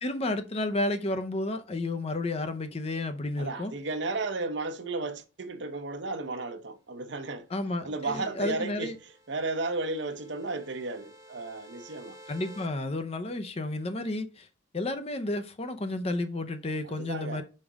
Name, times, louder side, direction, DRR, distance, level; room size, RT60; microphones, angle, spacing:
voice 1, 0.0-3.7 7.5-8.9 12.3-14.5 14.7-17.4, left 2 dB, 30° left, 0.6 m, -31 dB
voice 2, 3.4-7.5 7.8-12.2 16.8-17.4, right 3 dB, 65° right, 0.8 m, -34 dB
sound 1, 7.7-12.7, right 1 dB, 15° right, 0.8 m, -53 dB
5.3 x 5.1 x 3.5 m
head